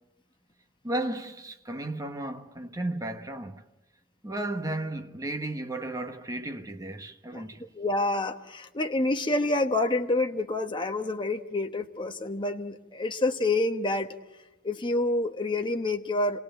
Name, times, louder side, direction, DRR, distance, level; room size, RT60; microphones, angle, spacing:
voice 1, 0.8-3.6 4.2-7.6, right 1 dB, 20° right, 1.2 m, -34 dB
voice 2, 7.7-14.1 14.6-16.4, left 2 dB, 25° left, 1.1 m, -28 dB
27.5 x 18.0 x 7.8 m
head